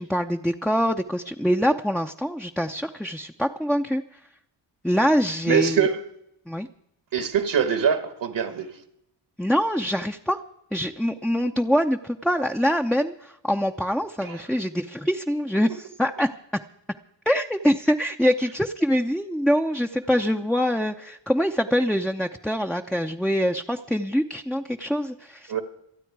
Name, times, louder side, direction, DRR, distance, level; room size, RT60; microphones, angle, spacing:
voice 1, 0.0-4.0 4.8-5.9 6.5-6.7 9.4-10.4 10.7-16.3 17.3-25.6, equal, ahead, 0.7 m, -24 dB
voice 2, 5.5-6.1 7.1-8.8 14.2-14.5 25.5-25.6, right 7 dB, 65° right, 1.5 m, -24 dB
26.5 x 9.1 x 4.7 m
cardioid pair, 55°, 47 cm